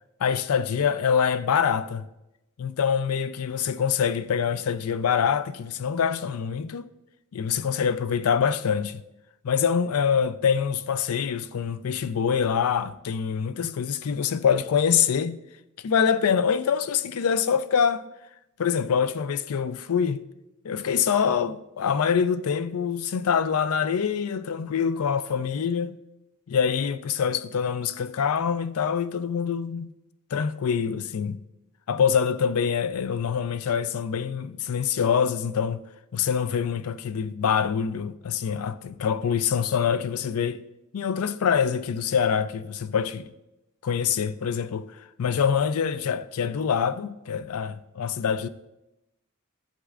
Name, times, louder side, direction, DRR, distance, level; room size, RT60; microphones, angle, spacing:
voice 1, 0.2-2.1 2.6-6.9 7.3-9.0 9.4-15.4 15.8-18.0 18.6-20.2 20.6-26.0 26.5-29.9 30.3-31.4 31.9-35.8 36.1-40.6 40.9-43.3 43.8-44.9 45.2-48.5, left 7 dB, 90° left, 0.4 m, -25 dB
11.5 x 7.3 x 2.5 m
head